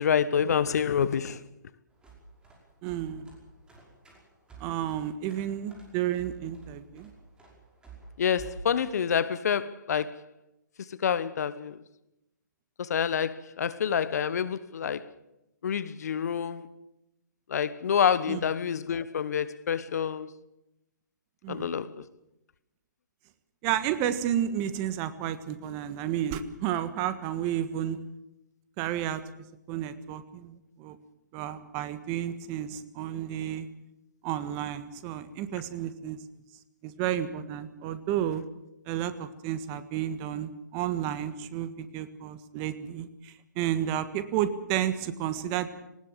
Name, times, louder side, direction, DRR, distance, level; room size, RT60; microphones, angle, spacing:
voice 1, 0.0-1.4 8.2-10.2 10.9-11.8 12.8-15.1 15.6-16.7 17.5-20.3 21.5-22.0, left 7 dB, 55° left, 1.2 m, -27 dB
sound 1, 1.9-8.7, right 4 dB, 10° right, 5.4 m, -49 dB
voice 2, 2.8-3.3 4.6-7.1 18.3-18.4 21.4-21.7 23.6-28.0 28.8-29.2 29.7-31.0 31.3-33.7 34.2-36.2 36.8-38.4 38.9-45.7, right 11 dB, 25° right, 1.5 m, -31 dB
20.0 x 19.5 x 7.4 m
figure-of-eight pair, 135°, 10 cm